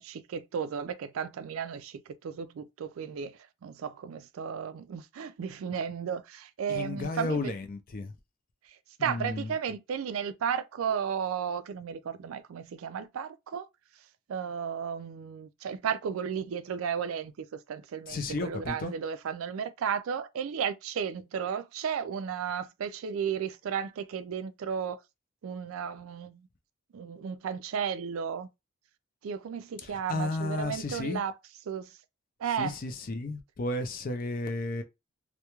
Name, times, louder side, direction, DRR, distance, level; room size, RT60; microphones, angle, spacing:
voice 1, 0.0-7.5 9.0-13.6 14.3-25.0 25.4-26.4 26.9-28.5 29.2-31.3 31.7-31.8 32.4-32.8, right 7 dB, 80° right, 0.4 m, -34 dB
voice 2, 6.7-8.1 9.0-9.5 18.1-18.9 29.8-31.2 32.6-34.8, left 2 dB, 45° left, 0.5 m, -33 dB
2.3 x 2.1 x 2.9 m
head